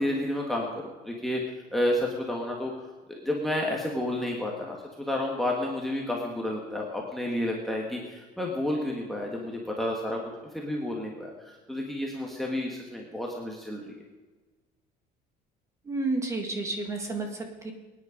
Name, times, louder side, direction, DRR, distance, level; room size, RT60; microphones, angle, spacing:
voice 1, 0.0-10.2 10.5-13.8, left 1 dB, ahead, -1 dB, 1.5 m, -31 dB
voice 2, 15.8-17.7, right 2 dB, 15° right, 3 dB, 1.9 m, -31 dB
23.5 x 9.8 x 5.0 m, 1.2 s
cardioid pair, 180°, 17 cm